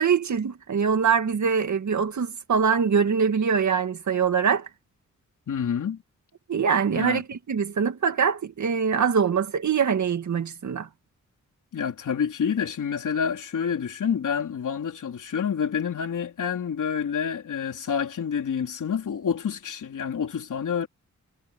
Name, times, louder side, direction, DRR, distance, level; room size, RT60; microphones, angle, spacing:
voice 1, 0.0-4.7 6.5-10.9, right 6 dB, 70° right, 2.2 m, -23 dB
voice 2, 5.5-6.0 6.9-7.2 11.7-20.9, left 7 dB, 85° left, 3.6 m, -28 dB
wide cardioid pair, 95°, 30 cm